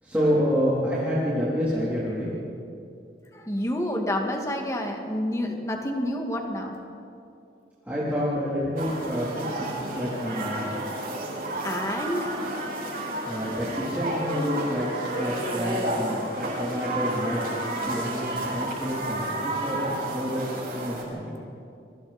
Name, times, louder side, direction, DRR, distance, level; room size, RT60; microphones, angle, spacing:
voice 1, 0.0-2.3 7.8-10.7 13.3-17.4 17.9-21.4, equal, 10° right, -10 dB, 3.8 m, -28 dB
voice 2, 3.3-6.8 11.6-12.4, left 1 dB, 15° left, 2 dB, 2.2 m, -28 dB
sound 1, 8.8-21.0, right 1 dB, 50° right, 6.2 m, -31 dB
29.5 x 23.0 x 4.5 m, 2.6 s
head